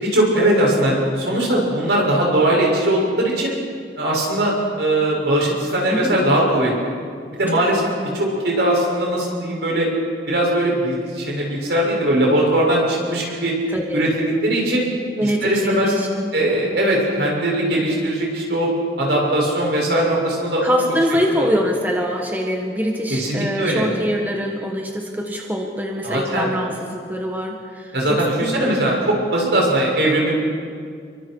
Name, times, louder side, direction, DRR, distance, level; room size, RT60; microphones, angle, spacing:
voice 1, 0.1-3.5 4.0-6.7 7.4-7.8 8.1-9.9 10.3-13.5 13.9-14.9 15.2-15.9 16.3-20.7 21.4-21.5 23.1-23.9 26.0-26.5 27.9-30.3, right 1 dB, 75° right, -2 dB, 7.0 m, -20 dB
voice 2, 13.7-14.0 15.2-16.3 20.6-28.7, equal, 10° right, 1 dB, 1.7 m, -24 dB
29.0 x 23.5 x 4.8 m, 2.1 s
head